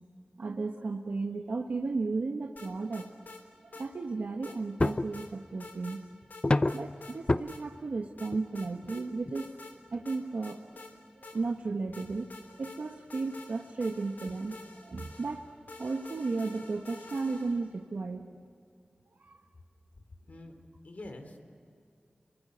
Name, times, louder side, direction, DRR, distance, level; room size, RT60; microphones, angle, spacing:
voice 1, 0.4-3.1 3.7-6.0 6.7-9.5 9.9-10.6 11.2-12.3 12.6-15.5 15.8-18.2 19.2-19.3, right 3 dB, 80° right, 4 dB, 1.4 m, -34 dB
sound 1, 2.6-3.4 3.7-3.9 4.4-5.3 5.6-6.0 6.3-7.2 7.5-7.6 8.2-9.0 9.3-9.8 10.1-11.6 11.9-17.7, left 3 dB, 85° left, 3.5 m, -48 dB
sound 2, 4.8-5.2 6.4-6.9 7.3-7.4 8.3-8.4 8.8-9.0 9.3-9.4 9.9-10.0, left 2 dB, 35° left, 0.7 m, -26 dB
voice 2, 20.8-21.4, left 2 dB, 60° left, 5 dB, 3.7 m, -45 dB
27.5 x 23.5 x 8.1 m, 2.4 s
wide cardioid pair, 50°, 3 cm